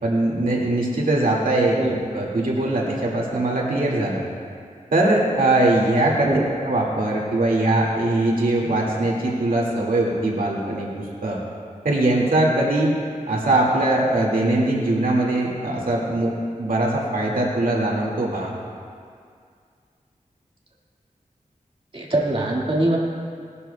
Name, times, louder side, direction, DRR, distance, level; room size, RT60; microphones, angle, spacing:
voice 1, 0.0-1.8 2.1-4.2 4.9-6.3 6.6-11.4 11.8-12.9 13.3-16.3 16.6-18.5, right 2 dB, 90° right, -3 dB, 2.0 m, -21 dB
voice 2, 21.9-23.0, right 1 dB, 40° right, -4 dB, 1.9 m, -22 dB
19.0 x 12.0 x 2.2 m, 2.2 s
wide cardioid pair, 85°, 14 cm